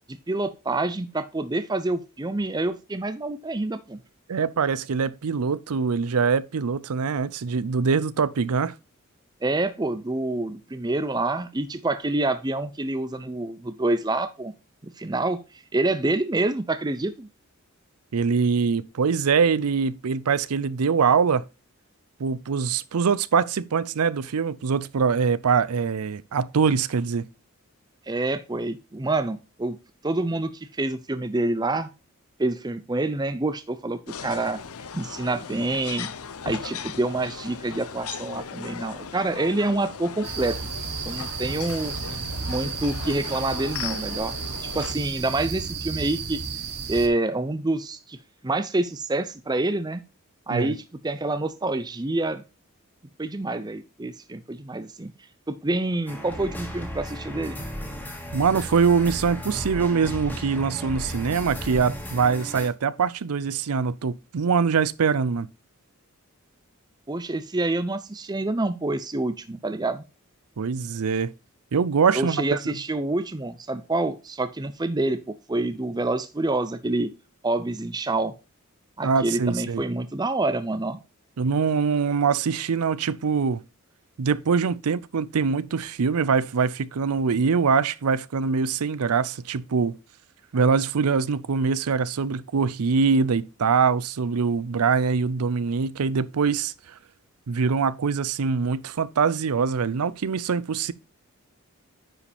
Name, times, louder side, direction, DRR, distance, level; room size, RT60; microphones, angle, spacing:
voice 1, 0.1-4.0 9.4-14.5 15.0-17.3 28.1-29.8 30.0-31.9 32.4-34.6 34.9-36.1 36.5-40.6 41.1-41.9 42.5-44.4 44.6-46.4 46.9-48.2 48.4-50.0 50.5-52.4 53.2-55.1 55.5-57.6 67.1-70.0 72.1-77.1 77.4-78.3 79.0-81.0, right 2 dB, 20° right, 0.5 m, -27 dB
voice 2, 4.3-8.7 18.1-21.4 22.2-27.3 50.5-50.7 58.3-65.5 70.6-71.3 71.7-72.8 79.0-79.8 81.4-83.6 84.2-90.0 90.5-96.7 97.5-100.9, right 5 dB, 90° right, 0.5 m, -23 dB
sound 1, 34.1-44.9, left 7 dB, 80° left, 0.7 m, -37 dB
sound 2, 40.2-47.1, right 5 dB, 50° right, 1.4 m, -33 dB
sound 3, 56.1-62.7, equal, 10° left, 1.9 m, -35 dB
9.8 x 5.0 x 3.4 m
head